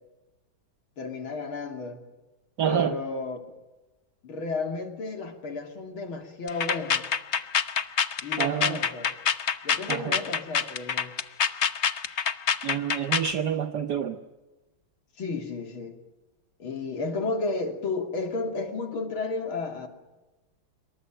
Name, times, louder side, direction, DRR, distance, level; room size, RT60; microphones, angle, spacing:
voice 1, 1.0-2.0 2.6-3.4 4.2-7.0 8.2-9.1 9.6-11.1 15.2-16.0 16.6-19.9, left 3 dB, 85° left, 5 dB, 3.7 m, -32 dB
voice 2, 2.6-3.0 8.4-8.8 9.9-10.2 12.6-14.2, right 9 dB, 60° right, 8 dB, 1.6 m, -28 dB
sound 1, 6.5-13.3, left 7 dB, 45° left, 1.0 m, -26 dB
27.0 x 23.0 x 9.0 m, 1.1 s
omnidirectional pair, 2.2 m